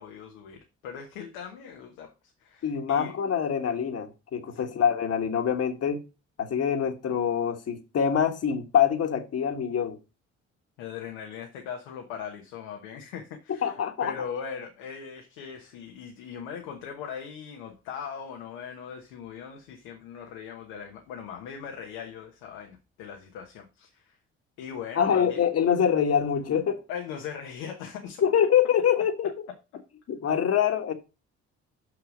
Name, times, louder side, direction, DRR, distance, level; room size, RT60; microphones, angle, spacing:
voice 1, 0.0-3.1 4.5-4.8 10.8-24.2 24.6-25.4 26.9-28.2, left 7 dB, 90° left, 1.2 m, -40 dB
voice 2, 2.6-6.0 6.4-10.0 13.6-14.1 24.9-26.8 28.2-29.3 30.1-30.9, left 8 dB, 55° left, 1.5 m, -25 dB
6.5 x 6.1 x 5.1 m
supercardioid pair, 60°, 29 cm